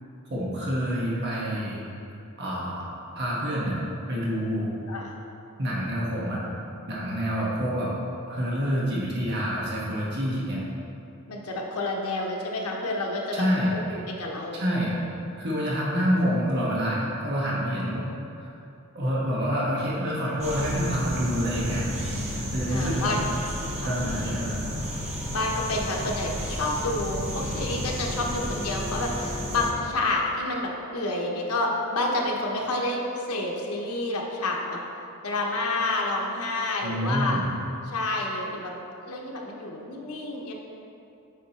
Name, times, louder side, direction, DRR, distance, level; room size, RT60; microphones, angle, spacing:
voice 1, 0.3-1.8 2.4-2.8 3.1-3.8 4.1-4.7 5.6-6.4 6.9-7.9 8.3-10.6 13.3-13.8 14.5-14.9 15.4-18.1 18.4-18.5 18.9-21.9 22.3-23.2 23.8-24.7 36.8-37.5, equal, 50° right, -6 dB, 1.3 m, -27 dB
voice 2, 11.3-13.5 13.9-14.6 22.7-23.3 23.7-24.0 25.3-34.8 35.2-37.4 37.8-38.7 39.0-40.5, left 2 dB, 85° left, -1 dB, 0.9 m, -29 dB
sound 1, 20.4-29.7, equal, 30° right, 0.8 m, -32 dB
8.4 x 4.9 x 2.9 m, 2.7 s
head